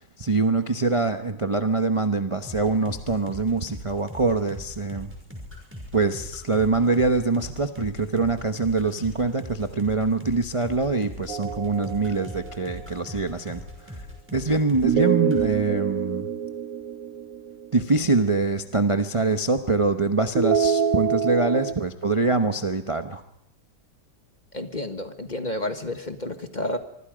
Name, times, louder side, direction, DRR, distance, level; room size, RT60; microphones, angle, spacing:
voice 1, 0.2-5.1 5.9-14.0 14.3-16.3 17.7-23.2, right 3 dB, 25° right, 7 dB, 0.8 m, -24 dB
sound 1, 2.4-15.0 15.3-15.5, left 1 dB, 5° right, 5.9 m, -40 dB
sound 2, 11.3-12.8 14.8-18.0 20.3-21.7, right 7 dB, 55° right, 1.4 m, -26 dB
voice 2, 24.5-26.8, left 1 dB, 30° left, 8 dB, 1.4 m, -30 dB
25.0 x 24.0 x 5.1 m, 0.76 s
omnidirectional pair, 1.8 m